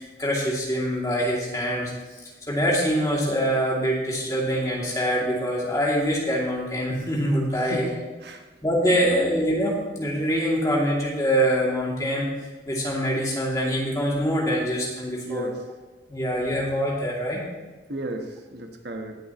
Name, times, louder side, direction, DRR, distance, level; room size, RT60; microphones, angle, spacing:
voice 1, 0.0-1.9 2.5-7.9 8.6-12.2 12.7-15.5 16.1-17.4, equal, 20° left, -4 dB, 2.6 m, -24 dB
voice 2, 15.2-15.6 17.9-19.2, right 1 dB, 70° right, 4 dB, 1.2 m, -34 dB
18.5 x 8.1 x 3.0 m, 1.3 s
head